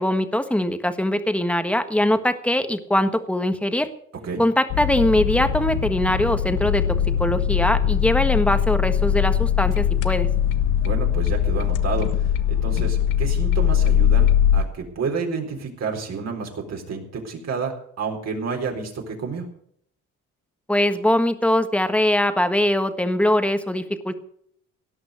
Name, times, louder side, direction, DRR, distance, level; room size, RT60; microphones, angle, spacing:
voice 1, 0.0-3.9 4.4-6.8 7.2-10.3 20.7-24.1, left 1 dB, 5° left, 9 dB, 1.5 m, -22 dB
sound 1, 4.7-14.6, left 9 dB, 90° left, 1.0 m, -21 dB
voice 2, 10.8-19.5, right 5 dB, 60° right, 1 dB, 4.0 m, -30 dB
17.5 x 6.0 x 9.5 m, 0.67 s
cardioid pair, 90°, 30 cm